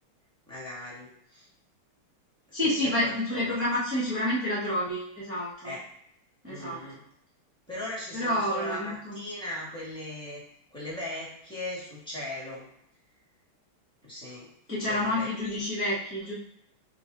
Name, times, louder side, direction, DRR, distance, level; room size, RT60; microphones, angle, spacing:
voice 1, 0.5-1.5 2.5-3.6 5.6-5.8 6.4-7.0 7.7-10.4 10.7-12.7 14.0-14.5 14.8-15.3, left 1 dB, 5° left, -7 dB, 1.1 m, -39 dB
voice 2, 2.5-5.7 6.4-6.8 8.1-9.2 14.7-16.3, left 1 dB, 15° right, -9 dB, 0.4 m, -29 dB
3.8 x 3.1 x 3.8 m, 0.72 s
omnidirectional pair, 2.4 m